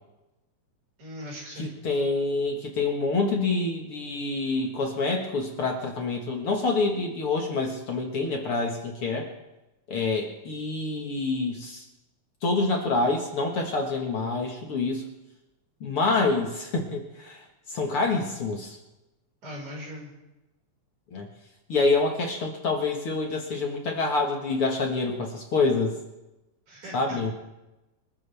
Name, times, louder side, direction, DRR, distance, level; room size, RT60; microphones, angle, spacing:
voice 1, 1.0-1.7 19.4-20.1 26.7-27.3, equal, 70° right, -3 dB, 6.6 m, -40 dB
voice 2, 1.6-9.3 9.9-11.8 12.4-15.0 15.8-18.8 21.1-21.3 21.7-26.0 26.9-27.3, left 3 dB, 50° left, 1 dB, 2.3 m, -27 dB
26.0 x 13.0 x 3.5 m, 0.99 s
omnidirectional pair, 3.5 m